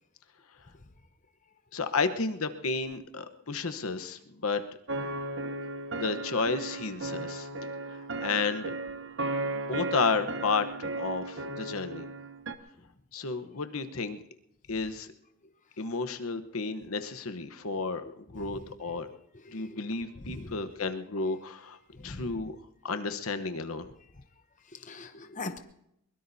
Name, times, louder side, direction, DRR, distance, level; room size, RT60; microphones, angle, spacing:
voice 1, 1.7-4.6 5.9-7.5 8.2-8.7 9.5-10.7 11.0-12.0 13.1-14.2 14.7-15.1 15.8-18.0 18.3-19.1 19.5-21.8 22.0-22.6 22.8-23.9, left 4 dB, 75° left, 9 dB, 1.0 m, -32 dB
sound 1, 4.9-12.5, right 2 dB, 55° right, 1.0 m, -35 dB
voice 2, 19.5-19.8 20.2-20.5 22.0-22.2 24.7-25.6, left 3 dB, 35° left, 8 dB, 0.8 m, -41 dB
23.0 x 21.5 x 2.7 m, 0.76 s
head